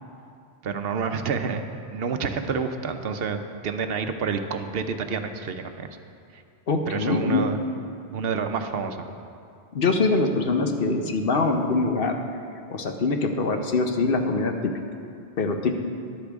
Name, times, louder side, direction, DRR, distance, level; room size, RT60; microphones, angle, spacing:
voice 1, 0.6-1.6 1.9-5.9 6.3-6.4 6.9-7.6 8.1-9.0, right 5 dB, 65° right, 7 dB, 0.8 m, -28 dB
voice 2, 6.7-7.4 9.7-12.2 12.7-14.7 15.4-15.7, left 3 dB, 60° left, 5 dB, 1.0 m, -23 dB
13.0 x 11.0 x 3.5 m, 2.5 s
omnidirectional pair, 1.1 m